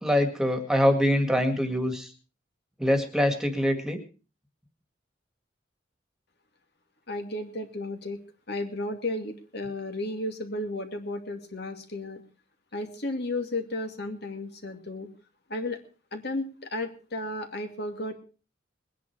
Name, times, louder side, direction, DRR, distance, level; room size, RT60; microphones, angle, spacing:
voice 1, 0.0-2.1 2.8-4.0, equal, 5° right, 5 dB, 2.1 m, -24 dB
voice 2, 7.1-8.2 8.5-12.2 12.7-15.1 15.5-15.8 16.1-18.1, left 2 dB, 60° left, 5 dB, 2.4 m, -33 dB
21.0 x 10.0 x 4.7 m, 0.36 s
head